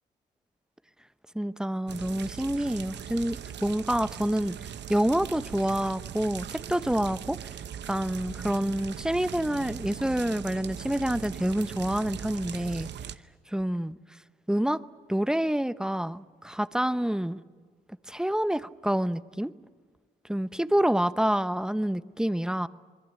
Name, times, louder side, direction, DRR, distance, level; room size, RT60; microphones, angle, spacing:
voice 1, 1.3-4.5 4.9-7.4 7.9-12.9 13.5-13.9 14.5-14.8 15.1-17.4 18.1-19.5 20.3-22.7, right 1 dB, 5° right, 14 dB, 0.8 m, -27 dB
sound 1, 1.9-13.2, right 9 dB, 60° right, 1.0 m, -40 dB
27.0 x 21.5 x 8.3 m, 1.5 s
cardioid pair, 90°, 20 cm